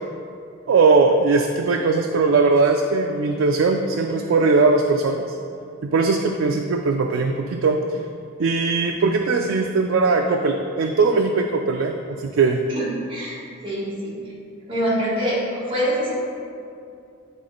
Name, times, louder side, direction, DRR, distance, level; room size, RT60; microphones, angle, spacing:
voice 1, 0.7-5.4 5.8-8.0 8.4-12.6, right 4 dB, 70° right, 3 dB, 0.4 m, -19 dB
voice 2, 12.7-13.4 13.6-14.2 14.7-16.2, equal, 25° right, -8 dB, 1.6 m, -25 dB
10.0 x 3.7 x 3.8 m, 2.5 s
head